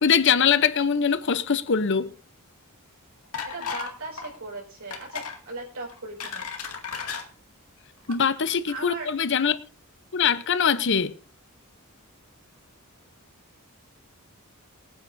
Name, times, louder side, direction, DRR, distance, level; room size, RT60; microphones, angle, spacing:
voice 1, 0.0-2.1 8.1-9.6 10.1-11.2, left 6 dB, 55° left, 0.7 m, -22 dB
sound 1, 3.3-3.9 4.2-4.4 4.9-5.4 5.9-7.2 8.0-8.1 8.5-8.6, left 6 dB, 85° left, 2.2 m, -34 dB
voice 2, 3.4-6.5 8.1-8.2 8.7-9.1, right 2 dB, 70° right, 5.4 m, -38 dB
23.5 x 9.5 x 2.6 m
head